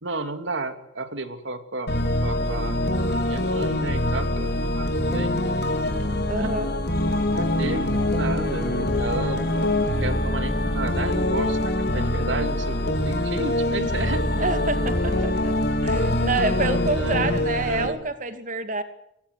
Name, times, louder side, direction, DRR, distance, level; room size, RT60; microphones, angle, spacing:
voice 1, 0.0-2.8 3.1-5.4 6.4-6.5 7.3-14.2 16.9-17.3 17.6-18.0, right 2 dB, 80° right, 9 dB, 2.7 m, -32 dB
sound 1, 1.9-17.9, left 1 dB, 60° left, 3.8 m, -24 dB
voice 2, 6.3-6.7 14.4-15.5 15.8-18.8, right 3 dB, 45° right, 9 dB, 2.6 m, -27 dB
24.0 x 20.0 x 8.3 m, 0.78 s
head